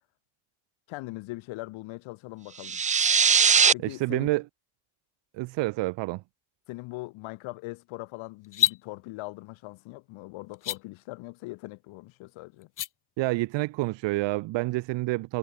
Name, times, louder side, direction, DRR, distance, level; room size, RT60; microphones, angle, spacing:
voice 1, 0.9-2.8 3.7-4.3 6.7-12.7, left 21 dB, 85° left, 5.3 m, -40 dB
sound 1, 2.6-3.7, right 6 dB, 20° right, 0.3 m, -20 dB
voice 2, 3.8-4.4 5.3-6.2 13.2-15.4, right 21 dB, 70° right, 0.6 m, -28 dB
sound 2, 8.4-8.8 10.5-10.8 12.6-12.9, left 11 dB, 45° left, 0.8 m, -26 dB
supercardioid pair, 80°, 46 cm